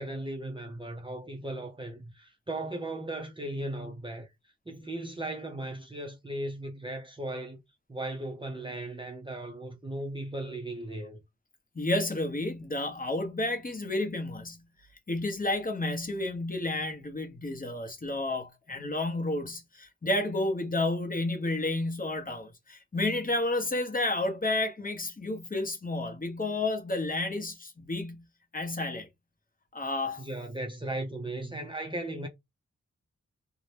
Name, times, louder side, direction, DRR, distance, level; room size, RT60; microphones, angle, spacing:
voice 1, 0.0-4.3 4.7-7.6 7.9-11.2 30.2-32.3, right 1 dB, 15° right, 0.5 m, -37 dB
voice 2, 11.7-14.7 15.1-28.3 28.5-29.1 29.7-30.2, left 2 dB, 30° left, 0.8 m, -31 dB
2.7 x 2.1 x 3.2 m
wide cardioid pair, 85°, 30 cm